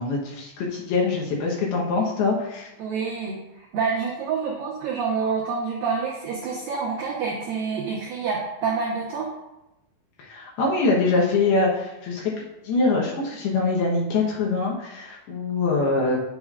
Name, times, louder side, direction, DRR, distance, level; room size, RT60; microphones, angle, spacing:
voice 1, 0.0-2.7 10.2-16.2, left 3 dB, 75° left, -2 dB, 2.8 m, -24 dB
voice 2, 2.8-9.3, right 5 dB, 75° right, -4 dB, 2.2 m, -27 dB
8.5 x 7.2 x 2.4 m, 0.94 s
omnidirectional pair, 4.9 m